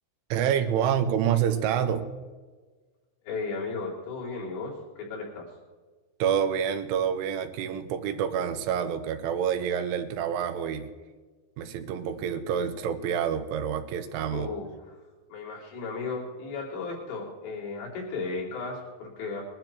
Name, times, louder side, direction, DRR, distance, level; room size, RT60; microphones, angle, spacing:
voice 1, 0.3-2.1 6.2-10.9 11.6-14.5, right 8 dB, 90° right, 8 dB, 3.5 m, -27 dB
voice 2, 3.3-5.5 14.3-15.0 15.3-19.4, left 4 dB, 75° left, -4 dB, 6.1 m, -35 dB
21.0 x 12.0 x 4.6 m, 1.3 s
omnidirectional pair, 5.4 m